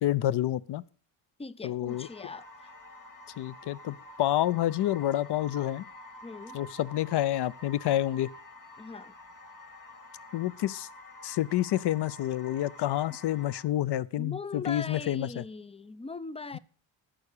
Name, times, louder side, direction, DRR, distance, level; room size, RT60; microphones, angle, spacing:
voice 1, 0.0-0.8 1.6-2.1 3.4-5.8 6.5-8.3 10.3-10.9 11.2-15.4, left 13 dB, 55° left, 0.6 m, -28 dB
voice 2, 1.4-2.7 6.2-6.6 8.8-9.1 14.2-16.6, left 4 dB, 15° left, 0.4 m, -40 dB
sound 1, 1.9-13.6, left 2 dB, 40° left, 1.9 m, -49 dB
11.5 x 7.4 x 6.6 m
cardioid pair, 105°, 49 cm